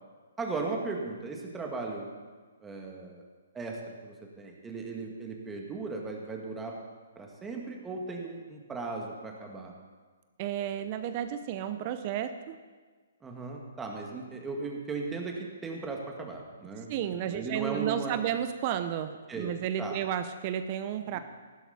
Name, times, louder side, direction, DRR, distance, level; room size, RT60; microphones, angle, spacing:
voice 1, 0.4-2.1 2.6-3.2 3.5-6.8 7.2-9.7 13.2-18.2 19.3-19.5 19.8-20.0 21.1-21.2, right 3 dB, 10° right, 0 dB, 2.1 m, -37 dB
voice 2, 10.4-12.6 16.9-21.2, right 10 dB, 40° right, 10 dB, 0.7 m, -32 dB
15.0 x 12.5 x 4.3 m, 1.4 s
hypercardioid pair, 135°, 0 cm